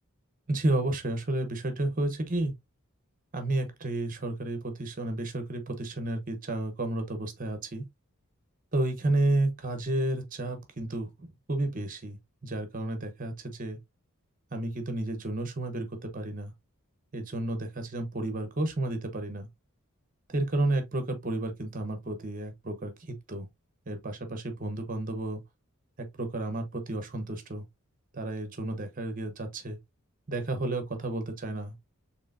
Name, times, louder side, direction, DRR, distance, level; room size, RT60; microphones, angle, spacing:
voice 1, 0.5-2.5 3.3-7.8 8.7-13.8 14.5-16.5 17.1-19.5 20.3-23.5 23.9-25.4 26.0-27.7 28.1-29.8 30.3-31.7, right 2 dB, 35° right, 0.9 m, -31 dB
4.6 x 3.4 x 2.6 m
head